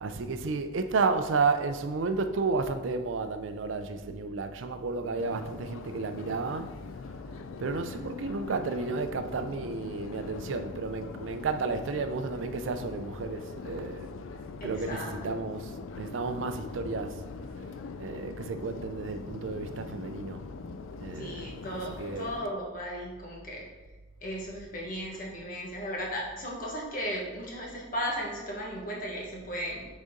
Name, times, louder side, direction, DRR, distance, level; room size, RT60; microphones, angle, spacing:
voice 1, 0.0-6.8 7.6-14.1 14.6-17.2 18.0-20.5 21.0-22.3, right 4 dB, 70° right, 0.5 m, -32 dB
Subway metro underground, 5.2-22.5, left 4 dB, 80° left, 0.4 m, -42 dB
voice 2, 14.6-15.4 21.1-23.6 24.2-29.9, equal, 45° left, 1.4 m, -36 dB
6.4 x 4.1 x 3.7 m
head